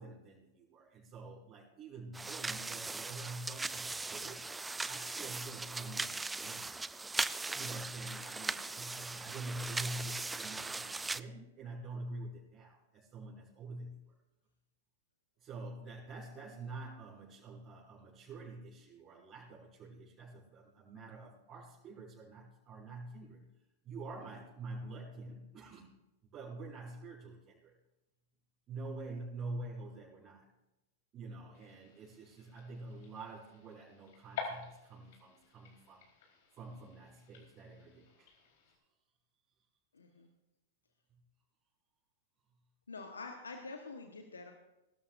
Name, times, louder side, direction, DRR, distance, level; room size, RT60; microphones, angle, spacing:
voice 1, 0.0-4.4 4.9-6.7 7.5-14.1 15.4-23.5 23.8-25.9 26.3-27.7 28.7-30.5 31.1-36.1 36.6-38.3 41.1-41.2, right 2 dB, 30° right, -8 dB, 6.1 m, -47 dB
sound 1, 2.1-11.2, right 3 dB, 10° right, 0.4 m, -39 dB
sound 2, 31.5-38.8, left 6 dB, 60° left, 4.2 m, -49 dB
voice 2, 39.9-40.3 42.9-44.5, left 3 dB, 85° left, 4 dB, 1.3 m, -46 dB
23.0 x 13.0 x 2.6 m, 0.97 s
hypercardioid pair, 105°, 0 cm